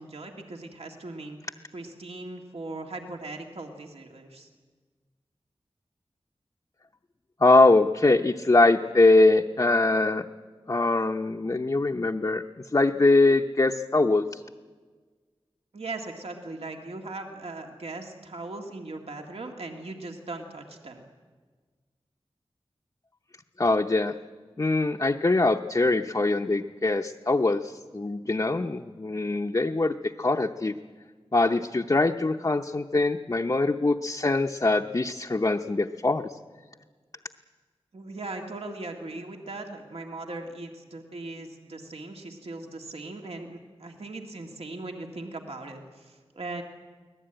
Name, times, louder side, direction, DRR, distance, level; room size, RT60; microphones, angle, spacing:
voice 1, 0.0-1.4 1.7-4.5 15.7-21.0 37.9-46.6, right 2 dB, 75° right, 2 dB, 2.0 m, -39 dB
voice 2, 7.4-10.2 10.7-12.4 12.7-14.4 23.6-24.1 24.6-30.7 31.3-36.4, left 2 dB, 35° left, 3 dB, 0.7 m, -23 dB
24.0 x 18.0 x 9.0 m, 1.5 s
wide cardioid pair, 75°, 10 cm